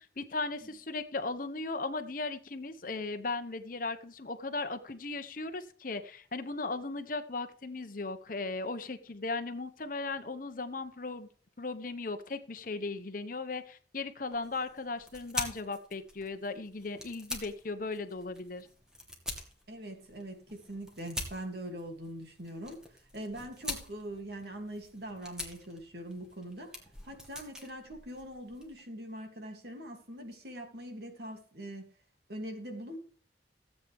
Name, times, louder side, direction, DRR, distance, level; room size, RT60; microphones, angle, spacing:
voice 1, 0.0-11.3 11.6-18.7, left 3 dB, 50° left, 10 dB, 1.0 m, -37 dB
sound 1, 14.3-28.8, left 1 dB, 5° right, 2.2 m, -45 dB
voice 2, 19.7-26.8 27.0-31.9 32.3-33.0, right 1 dB, 60° right, 3 dB, 2.9 m, -42 dB
16.0 x 8.4 x 3.6 m, 0.43 s
head